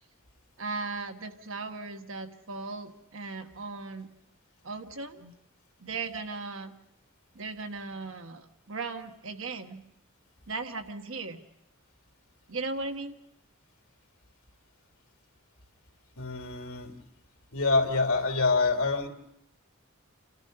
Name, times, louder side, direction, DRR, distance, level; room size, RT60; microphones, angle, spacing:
voice 1, 0.6-4.1 4.6-5.3 5.8-6.7 7.3-9.8 10.5-11.4 12.5-13.1, right 3 dB, 70° right, 6 dB, 1.3 m, -37 dB
voice 2, 16.2-16.9 17.5-19.1, left 3 dB, 85° left, 3 dB, 3.0 m, -26 dB
29.5 x 13.5 x 6.6 m, 0.83 s
head